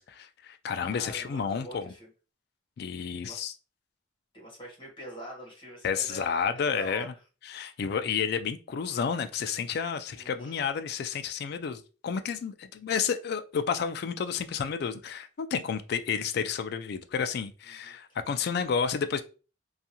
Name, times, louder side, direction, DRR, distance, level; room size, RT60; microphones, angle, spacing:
voice 1, 0.0-1.9 2.8-3.5 5.8-7.1 7.5-19.2, left 6 dB, 55° left, 0.3 m, -31 dB
voice 2, 0.8-2.1 3.2-3.4 4.3-7.2 10.1-10.6 17.8-17.9, right 1 dB, 25° left, 1.2 m, -44 dB
2.6 x 2.4 x 2.8 m
head